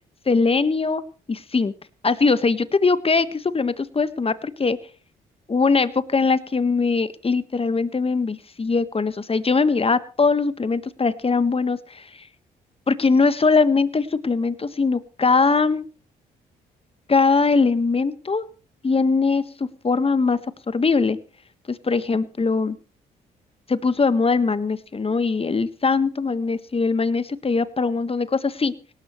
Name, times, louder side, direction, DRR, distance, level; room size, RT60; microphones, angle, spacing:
voice 1, 0.3-1.0 1.3-1.7 2.0-4.8 5.5-12.0 12.9-15.8 17.1-18.5 18.8-20.4 20.7-21.2 21.7-22.8 23.7-28.7, left 4 dB, 30° left, 13 dB, 1.5 m, -21 dB
18.0 x 18.0 x 3.2 m, 0.36 s
supercardioid pair, 55°, 19 cm